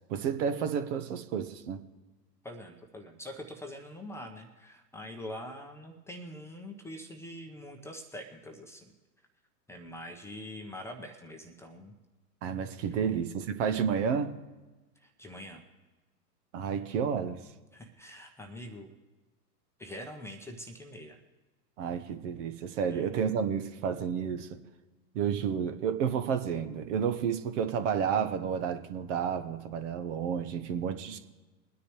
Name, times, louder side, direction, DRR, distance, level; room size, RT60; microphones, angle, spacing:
voice 1, 0.1-1.8 12.4-14.4 16.5-17.4 21.8-24.6 25.1-31.2, right 7 dB, 45° right, 9 dB, 1.0 m, -31 dB
voice 2, 2.4-8.9 9.7-11.9 13.0-13.1 15.0-15.6 17.7-18.9 19.8-21.2 22.9-23.1, left 1 dB, 5° left, 2 dB, 0.8 m, -44 dB
22.5 x 9.9 x 3.1 m, 1.2 s
hypercardioid pair, 115°, 50 cm